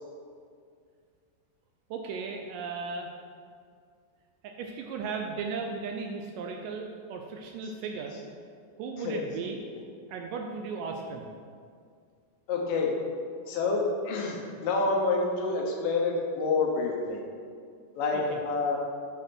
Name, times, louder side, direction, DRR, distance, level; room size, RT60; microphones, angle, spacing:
voice 1, 1.9-3.1 4.4-8.2 8.8-9.6 10.1-11.3 18.1-18.4, right 4 dB, 80° right, 2 dB, 2.0 m, -36 dB
voice 2, 12.5-12.9 13.5-17.2 17.9-18.8, left 3 dB, 75° left, 0 dB, 2.5 m, -28 dB
8.5 x 4.9 x 6.0 m, 2.2 s
omnidirectional pair, 4.2 m